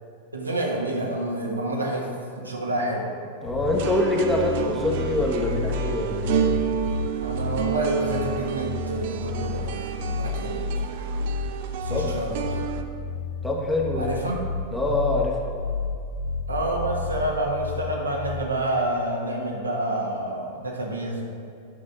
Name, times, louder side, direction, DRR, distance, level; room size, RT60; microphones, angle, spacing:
voice 1, 0.3-2.1 2.3-3.2 7.2-10.7 11.8-12.6 13.9-14.4 16.5-21.2, right 1 dB, 80° right, -1 dB, 1.2 m, -28 dB
voice 2, 3.4-6.6 11.9-12.1 13.4-14.1 14.7-15.4, left 2 dB, 5° left, -2 dB, 1.2 m, -25 dB
sound 1, 3.5-18.5, left 4 dB, 60° left, 0.6 m, -31 dB
sound 2, 3.7-12.8, right 10 dB, 50° right, 0.5 m, -31 dB
9.5 x 6.4 x 3.7 m, 2.4 s
figure-of-eight pair, 90°, 0 cm